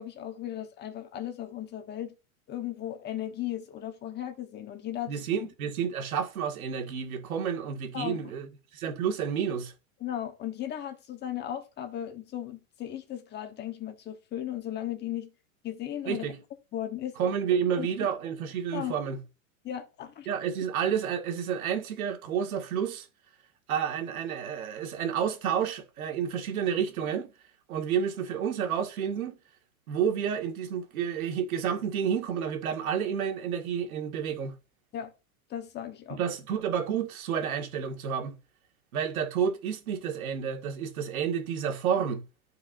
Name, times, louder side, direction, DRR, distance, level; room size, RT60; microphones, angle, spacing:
voice 1, 0.0-2.1 2.5-5.2 7.9-8.3 10.0-15.3 15.6-16.3 16.7-17.1 17.8-18.1 18.7-18.9 19.6-20.3 34.9-35.1 35.5-36.2, left 11 dB, 25° left, 1.2 m, -36 dB
voice 2, 5.1-9.7 16.1-16.4 17.2-19.2 20.3-23.1 23.7-27.3 27.7-29.4 29.9-34.5 36.2-38.4 38.9-42.2, right 8 dB, 80° right, 2.0 m, -30 dB
13.5 x 4.8 x 2.6 m
supercardioid pair, 140°, 42 cm